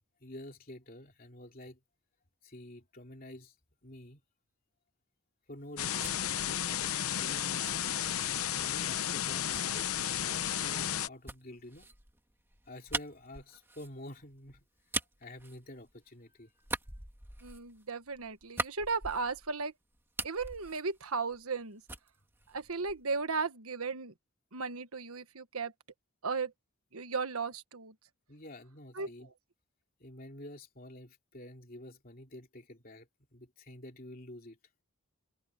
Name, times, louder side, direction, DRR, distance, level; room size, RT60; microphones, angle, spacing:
voice 1, 0.2-1.8 2.4-3.5 3.8-4.2 5.5-8.2 8.4-10.0 10.2-11.9 12.7-14.7 15.2-16.5 28.3-29.3 30.0-34.6, left 1 dB, 40° left, 2.9 m, -49 dB
sound 1, 5.6-8.6 9.5-16.2 16.6-19.6 19.9-21.6 21.9-23.2, right 2 dB, 10° right, 2.0 m, -43 dB
sound 2, 5.8-11.1, left 10 dB, 75° left, 0.8 m, -33 dB
voice 2, 17.4-19.7 20.2-21.8 22.5-24.1 24.5-25.7 26.2-26.5 26.9-27.9 28.9-29.1, right 4 dB, 80° right, 1.4 m, -35 dB
head